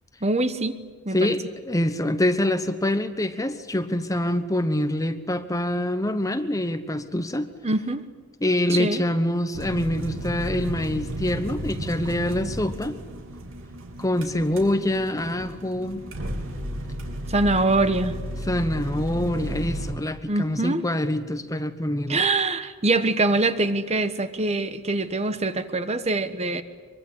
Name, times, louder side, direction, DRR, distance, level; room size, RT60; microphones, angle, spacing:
voice 1, 0.2-0.8 1.0-1.3 7.6-8.0 8.7-9.0 17.3-18.2 20.3-20.8 22.1-26.6, right 2 dB, 30° right, 10 dB, 1.2 m, -24 dB
voice 2, 1.1-7.5 8.4-13.0 14.0-16.0 18.5-22.2, left 1 dB, 15° left, 10 dB, 1.1 m, -25 dB
sound 1, 9.5-19.9, right 1 dB, 60° right, 3.5 m, -33 dB
24.0 x 24.0 x 9.9 m, 1.4 s
head